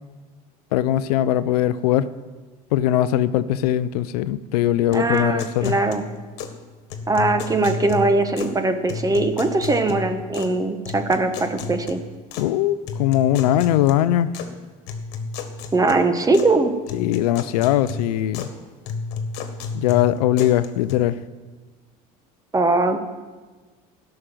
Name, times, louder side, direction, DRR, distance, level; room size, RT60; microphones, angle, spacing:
voice 1, 0.7-2.1 2.7-5.7 12.4-14.3 16.9-18.5 19.7-21.2, left 12 dB, 85° left, 15 dB, 0.5 m, -20 dB
sound 1, 4.9-6.6 6.9-8.6 8.9-10.6 10.9-12.5 12.9-14.5 14.9-16.6 16.9-18.6 18.9-20.9, left 4 dB, 65° left, 1.6 m, -33 dB
voice 2, 4.9-6.0 7.1-12.0 15.7-16.7 22.5-23.0, right 2 dB, 20° right, 8 dB, 1.3 m, -21 dB
12.5 x 6.5 x 9.0 m, 1.4 s
supercardioid pair, 90°, 19 cm